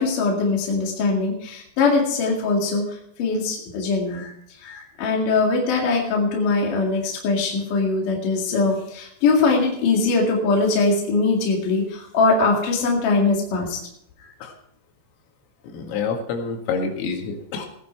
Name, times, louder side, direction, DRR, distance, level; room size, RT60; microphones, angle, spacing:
voice 1, 0.0-4.3 4.6-13.8 14.2-14.3, left 3 dB, 50° left, -1 dB, 3.1 m, -21 dB
voice 2, 15.7-17.7, left 5 dB, 85° left, 2 dB, 4.6 m, -27 dB
17.5 x 10.5 x 4.5 m, 0.72 s
omnidirectional pair, 5.9 m